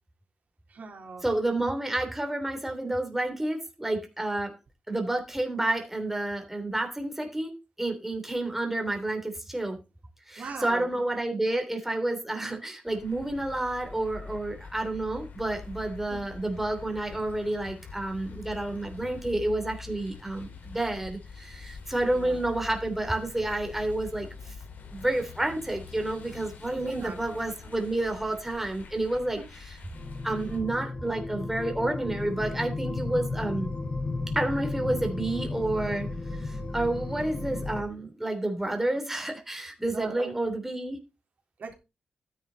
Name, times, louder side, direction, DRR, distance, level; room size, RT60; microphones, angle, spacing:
voice 1, 0.7-1.2 10.4-11.0 16.1-16.2 22.0-22.4 26.7-27.2 29.3-29.5 39.9-40.4 41.6-41.7, right 5 dB, 65° right, 2 dB, 3.6 m, -39 dB
voice 2, 1.2-4.5 4.9-7.5 7.8-9.8 10.3-24.5 24.9-29.4 30.2-33.7 34.3-36.1 36.4-41.0, right 1 dB, 10° right, 4 dB, 3.1 m, -30 dB
sound 1, 12.9-30.6, left 5 dB, 75° left, 4.2 m, -45 dB
sound 2, 29.9-37.8, left 3 dB, 40° left, 6.0 m, -34 dB
13.0 x 10.0 x 4.0 m, 0.28 s
cardioid pair, 90°, 3 cm